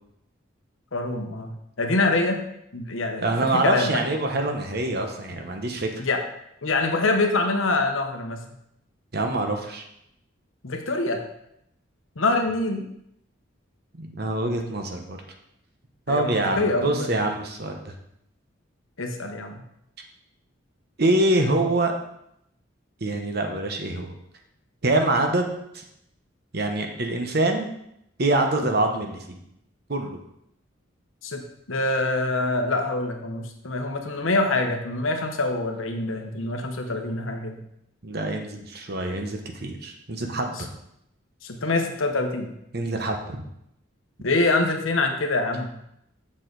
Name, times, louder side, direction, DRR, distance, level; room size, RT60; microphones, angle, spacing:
voice 1, 0.9-2.4 2.7-3.9 6.0-6.2 6.6-8.4 10.6-11.2 12.2-12.8 16.1-17.1 19.0-19.6 31.2-31.4 31.7-37.6 40.6-40.7 41.4-42.5 44.2-45.7, left 2 dB, 80° left, 4 dB, 1.0 m, -25 dB
voice 2, 3.2-6.0 9.1-9.8 14.0-15.2 16.1-17.9 21.0-21.9 23.0-24.1 24.8-25.8 26.5-27.7 28.2-29.4 29.9-30.2 38.0-40.7 42.7-43.5, right 2 dB, 50° right, 4 dB, 1.0 m, -25 dB
7.3 x 6.5 x 4.0 m, 0.77 s
head